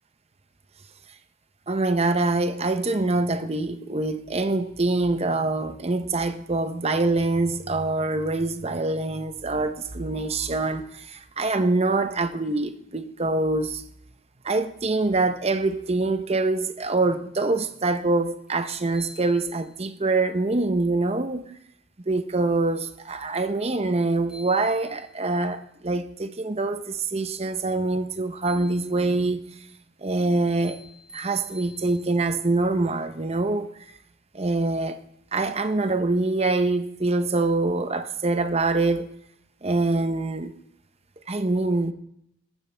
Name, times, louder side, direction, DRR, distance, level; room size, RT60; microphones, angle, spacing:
voice 1, 1.7-13.8 14.4-21.5 22.1-29.4 30.0-30.8 31.1-33.7 34.3-35.0 35.3-39.1 39.6-40.5 41.3-41.9, right 2 dB, 30° right, 0.7 m, -25 dB
sound 1, 18.5-18.6 18.9-20.0 23.9-24.0 24.3-25.4 28.4-29.3 30.6-32.4, left 1 dB, 5° right, 3.7 m, -49 dB
20.5 x 15.0 x 3.4 m
head